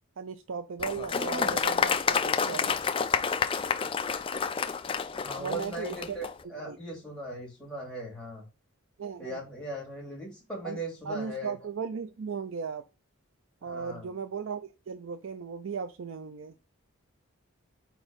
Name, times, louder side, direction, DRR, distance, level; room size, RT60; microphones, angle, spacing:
voice 1, 0.2-2.7 5.4-6.2 6.6-6.8 9.0-9.4 10.6-10.8 11.1-12.8 13.6-16.5, right 5 dB, 60° right, 10 dB, 0.4 m, -36 dB
Applause, 0.8-6.3, left 6 dB, 25° left, 0.3 m, -29 dB
voice 2, 5.1-8.5 9.2-11.5 13.6-14.1, right 1 dB, 5° left, -4 dB, 2.6 m, -39 dB
4.5 x 4.1 x 5.1 m, 0.28 s
head